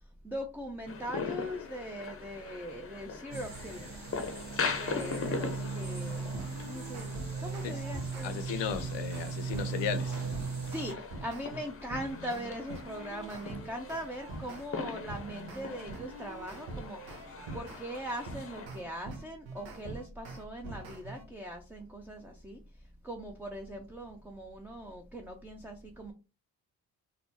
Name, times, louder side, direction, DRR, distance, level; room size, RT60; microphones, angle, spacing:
voice 1, 0.2-4.1 4.7-6.4 6.6-7.1 7.4-8.4 10.6-17.0 17.5-22.6 23.0-26.1, equal, 5° right, 0.5 m, -40 dB
sound 1, 0.9-18.7, left 5 dB, 30° left, 0.7 m, -41 dB
sound 2, 3.3-10.9, right 5 dB, 35° right, 1.3 m, -38 dB
sound 3, 6.1-8.3 8.7-14.7 15.1-17.8 18.3-21.2, right 2 dB, 70° right, 1.1 m, -44 dB
voice 2, 8.2-10.2, left 8 dB, 65° left, 0.7 m, -35 dB
4.1 x 2.1 x 2.8 m
hypercardioid pair, 45°, 46 cm